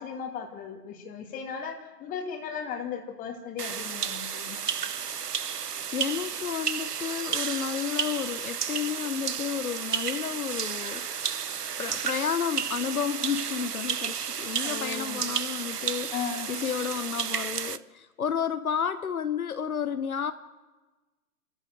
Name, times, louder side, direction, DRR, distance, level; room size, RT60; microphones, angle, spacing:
voice 1, 0.0-4.7 14.6-15.2 16.1-16.5, left 7 dB, 15° left, 4 dB, 2.4 m, -36 dB
sound 1, 3.6-17.8, right 7 dB, 80° right, 0.9 m, -32 dB
voice 2, 5.9-11.3 11.8-20.3, left 7 dB, 65° left, 11 dB, 1.0 m, -31 dB
29.5 x 13.5 x 7.6 m, 1.2 s
figure-of-eight pair, 130°, 47 cm